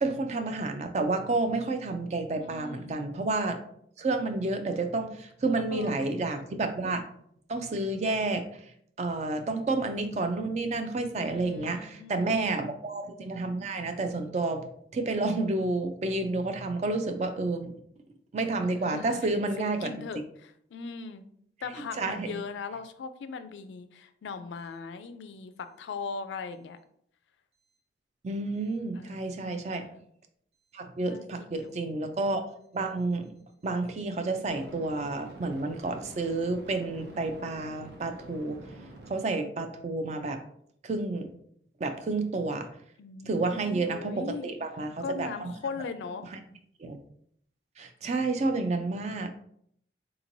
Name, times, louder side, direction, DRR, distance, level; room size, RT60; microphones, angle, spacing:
voice 1, 0.0-3.6 4.0-7.0 7.5-8.5 9.0-14.7 14.9-17.7 18.3-20.1 21.9-22.3 28.2-29.9 30.7-32.5 32.7-33.3 33.6-38.6 39.1-40.4 40.8-41.3 41.8-42.7 43.2-45.5 46.8-47.0 47.8-49.3, right 3 dB, 40° right, 7 dB, 0.3 m, -30 dB
voice 2, 2.4-3.0 5.7-6.1 11.3-12.6 18.9-19.2 19.6-21.3 21.6-26.8 28.9-30.0 31.1-31.7 43.0-44.5 45.0-46.3, left 5 dB, 85° left, 11 dB, 0.3 m, -39 dB
sound 1, 29.6-29.8 34.5-39.1, right 1 dB, 70° right, 0.7 m, -48 dB
3.7 x 3.0 x 2.6 m, 0.67 s
head